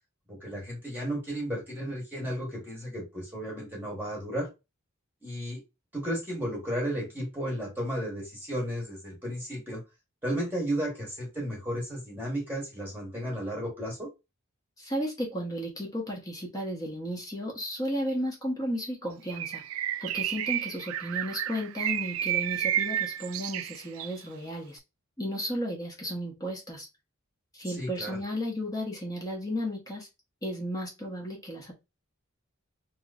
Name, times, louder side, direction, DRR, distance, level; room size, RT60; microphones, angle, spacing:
voice 1, 0.3-4.5 5.2-5.6 5.9-9.8 10.2-14.1 27.7-28.2, equal, 10° right, -3 dB, 1.3 m, -33 dB
voice 2, 14.8-19.6 20.0-24.8 25.2-26.9 27.5-30.1 30.4-31.7, equal, 15° left, -1 dB, 1.1 m, -34 dB
Bird, 19.3-24.2, right 11 dB, 80° right, 0.4 m, -31 dB
3.0 x 3.0 x 2.4 m, 0.24 s
head